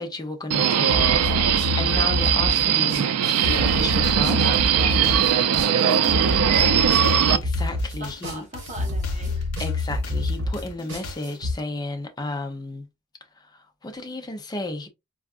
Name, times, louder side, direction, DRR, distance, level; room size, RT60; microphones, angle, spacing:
voice 1, 0.0-4.6 7.3-8.4 9.6-12.9 13.4-14.9, left 2 dB, 20° left, 0.5 m, -33 dB
Subway metro underground, 0.5-7.4, right 9 dB, 90° right, 0.4 m, -20 dB
sound 1, 0.9-11.5, left 2 dB, 55° right, 1.7 m, -27 dB
sound 2, 3.5-11.5, left 2 dB, 75° left, 0.8 m, -41 dB
voice 2, 5.0-7.2 8.0-9.5, right 1 dB, 35° right, 1.2 m, -41 dB
4.4 x 2.4 x 2.4 m
head